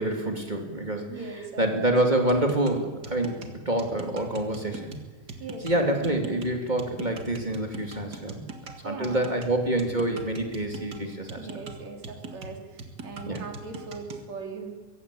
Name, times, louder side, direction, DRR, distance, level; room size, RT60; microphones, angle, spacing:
voice 1, 0.0-1.1 1.6-5.0 5.6-8.4 8.8-11.4 13.2-13.4, right 1 dB, 15° right, 3 dB, 2.6 m, -27 dB
voice 2, 1.1-1.9 5.4-6.0 8.8-9.3 11.4-14.8, right 4 dB, 60° right, 3 dB, 4.3 m, -40 dB
sound 1, 2.3-14.3, right 3 dB, 35° right, 2.1 m, -42 dB
23.0 x 16.0 x 8.6 m, 1.2 s
omnidirectional pair, 3.5 m